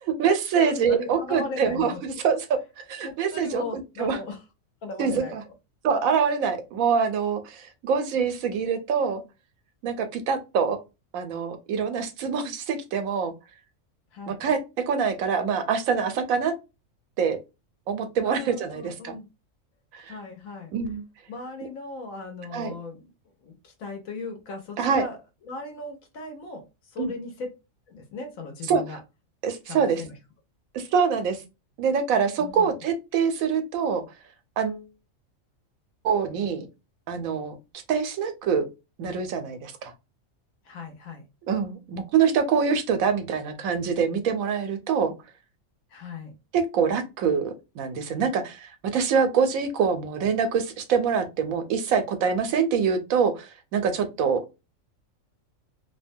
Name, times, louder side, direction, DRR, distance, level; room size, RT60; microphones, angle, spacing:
voice 1, 0.0-3.6 4.0-4.2 5.0-5.4 5.8-9.2 9.8-10.8 11.1-13.3 14.3-16.5 17.2-17.4 17.9-19.2 19.9-20.2 20.7-21.0 22.5-22.7 24.8-25.1 27.0-27.1 28.7-28.8 29.4-30.0 30.7-31.4 31.8-34.0 34.6-34.8 36.0-36.7 37.1-37.5 37.9-38.6 39.0-39.9 41.5-45.1 46.5-54.4, right 6 dB, 85° right, 1.0 m, -25 dB
voice 2, 0.6-2.0 3.0-4.4 4.8-5.4 14.1-14.5 18.2-19.3 20.1-20.7 21.3-23.1 23.4-25.2 25.4-27.5 27.9-29.0 29.7-30.1 32.4-32.7 40.6-41.2 45.9-46.3, left 3 dB, 85° left, 1.2 m, -37 dB
2.8 x 2.1 x 2.6 m
omnidirectional pair, 1.4 m